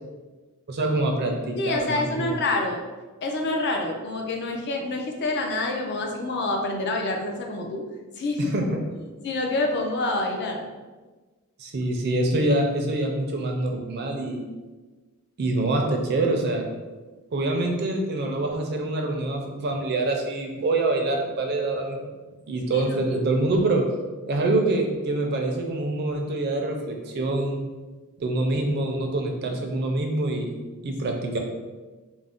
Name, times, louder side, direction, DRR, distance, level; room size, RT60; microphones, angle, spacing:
voice 1, 0.7-2.4 8.4-8.8 11.6-14.4 15.4-16.7 17.3-22.1 22.5-23.9 24.3-27.6 28.2-30.5 30.8-31.4, right 2 dB, 45° right, 2 dB, 0.4 m, -25 dB
voice 2, 1.6-2.8 3.2-7.8 8.2-8.5 9.2-10.7 22.7-22.9, left 2 dB, 50° left, 2 dB, 0.4 m, -27 dB
2.5 x 2.0 x 3.5 m, 1.3 s
head